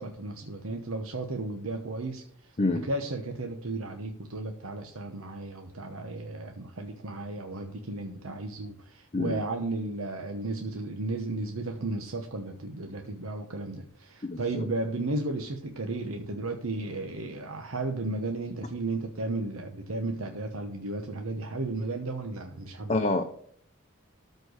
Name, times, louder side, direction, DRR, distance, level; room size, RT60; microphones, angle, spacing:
voice 1, 0.0-2.6 2.8-23.0, right 2 dB, 80° right, 4 dB, 1.1 m, -34 dB
voice 2, 14.2-14.7 22.9-23.2, left 2 dB, 35° left, 5 dB, 0.7 m, -27 dB
13.0 x 4.5 x 6.4 m, 0.64 s
head